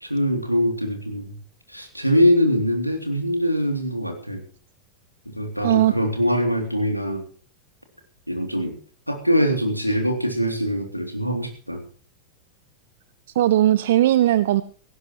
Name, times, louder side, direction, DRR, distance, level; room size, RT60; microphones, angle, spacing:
voice 1, 0.1-1.4 1.7-4.4 5.3-7.3 8.3-8.7 9.1-11.8, equal, 90° right, 4 dB, 2.9 m, -23 dB
voice 2, 5.6-6.0 13.4-14.6, right 13 dB, 55° right, 16 dB, 0.6 m, -18 dB
18.0 x 17.0 x 3.1 m, 0.42 s
figure-of-eight pair, 90°, 0 cm